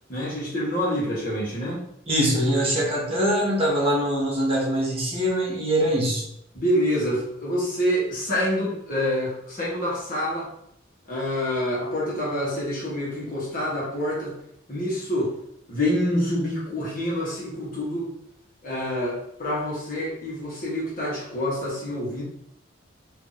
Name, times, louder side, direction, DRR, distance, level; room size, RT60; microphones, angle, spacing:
voice 1, 0.1-1.8 6.5-10.5 11.1-14.3 14.7-15.3 15.7-18.1 18.6-22.2, equal, 50° left, -6 dB, 1.3 m, -27 dB
voice 2, 2.1-6.2, equal, 30° right, -4 dB, 1.0 m, -23 dB
2.9 x 2.7 x 3.9 m, 0.76 s
head